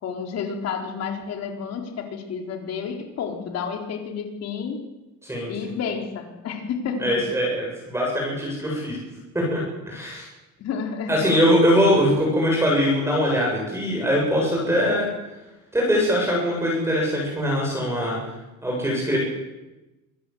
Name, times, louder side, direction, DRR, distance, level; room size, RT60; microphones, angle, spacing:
voice 1, 0.0-4.9 5.5-7.2 10.6-11.3, left 6 dB, 50° left, 3 dB, 4.2 m, -30 dB
voice 2, 5.2-5.7 7.0-9.0 9.3-10.2 11.1-15.1 15.7-18.2 18.6-19.2, equal, 10° right, -3 dB, 7.9 m, -22 dB
25.5 x 16.5 x 8.0 m, 1.0 s
cardioid pair, 165°, 32 cm